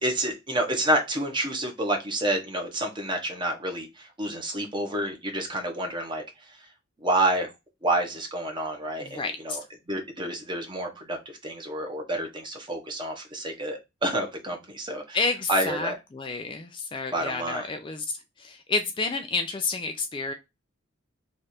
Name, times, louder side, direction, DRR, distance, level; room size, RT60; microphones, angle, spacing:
voice 1, 0.0-6.2 7.0-7.5 7.8-9.6 9.9-15.2 15.5-15.9 17.1-17.7, right 1 dB, 25° right, 2 dB, 1.0 m, -29 dB
voice 2, 9.0-9.6 15.1-18.1 18.4-20.3, left 3 dB, 25° left, 6 dB, 0.4 m, -30 dB
3.2 x 2.5 x 4.2 m, 0.23 s
head